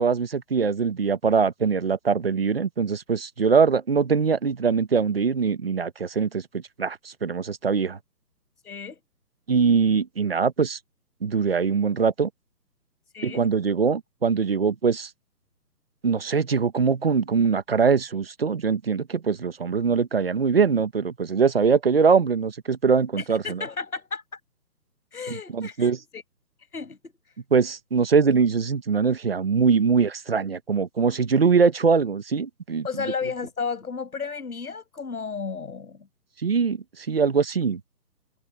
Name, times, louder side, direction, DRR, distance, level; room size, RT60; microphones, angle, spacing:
voice 1, 0.0-8.0 9.5-10.8 11.2-12.3 13.2-15.1 16.0-23.6 25.3-26.0 27.5-32.9 36.4-37.8, right 5 dB, 35° right, 1.4 m, -22 dB
voice 2, 8.6-9.0 13.1-13.4 23.2-24.2 25.1-26.2 26.7-27.0 32.8-36.1, left 5 dB, 65° left, 6.4 m, -33 dB
hypercardioid pair, 175°, 48 cm